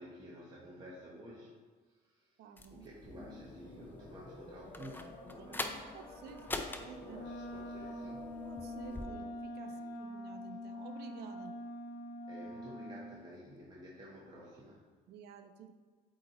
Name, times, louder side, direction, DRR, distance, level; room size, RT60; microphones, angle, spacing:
voice 1, 0.0-1.6 1.8-6.0 6.3-8.4 9.6-9.9 12.3-14.9, equal, 25° right, -5 dB, 1.1 m, -52 dB
voice 2, 2.4-2.9 5.9-7.2 8.4-11.5 15.1-15.7, right 7 dB, 75° right, 7 dB, 0.6 m, -52 dB
sound 1, 2.6-9.1, left 2 dB, 10° left, 0.5 m, -45 dB
sound 2, 3.0-9.5, left 2 dB, 35° left, 1.1 m, -52 dB
Wind instrument woodwind instrument, 7.1-13.2, left 1 dB, 90° left, 0.6 m, -44 dB
8.5 x 2.9 x 4.2 m, 1.4 s
cardioid pair, 110°, 17 cm